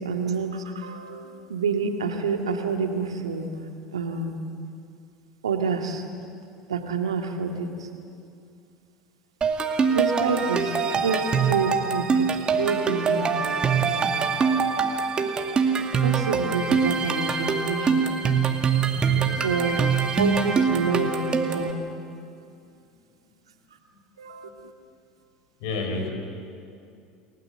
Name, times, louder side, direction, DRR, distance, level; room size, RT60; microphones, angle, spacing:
voice 1, 0.0-3.5 3.9-4.4 5.4-6.0 6.7-7.7 9.9-12.3 12.6-14.2 16.0-18.1 19.4-19.8 20.1-21.7 24.2-24.7, right 5 dB, 85° right, 4 dB, 2.1 m, -28 dB
sound 1, 9.4-21.7, right 5 dB, 30° right, 2.3 m, -24 dB
voice 2, 18.9-20.0 25.6-26.1, left 3 dB, 70° left, 4 dB, 4.8 m, -32 dB
29.0 x 17.5 x 7.8 m, 2.5 s
hypercardioid pair, 75°, 3 cm